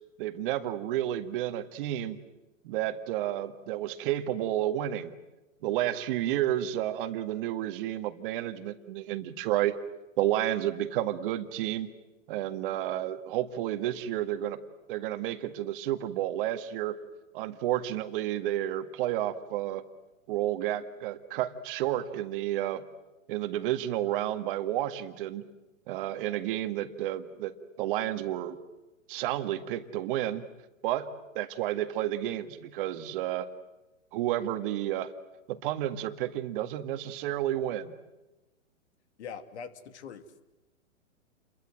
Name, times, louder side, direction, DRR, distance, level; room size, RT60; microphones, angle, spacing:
voice 1, 0.2-2.2 2.6-5.1 5.6-9.7 10.2-11.9 12.3-14.6 14.9-17.0 17.3-19.8 20.3-22.8 23.3-25.4 25.9-28.6 29.1-30.4 30.8-31.1 31.4-33.5 34.1-35.1 35.5-37.9, right 13 dB, 40° right, 8 dB, 1.9 m, -31 dB
voice 2, 39.2-40.2, left 6 dB, 55° left, 9 dB, 2.7 m, -42 dB
30.0 x 22.5 x 7.9 m, 1.1 s
hypercardioid pair, 130°, 40 cm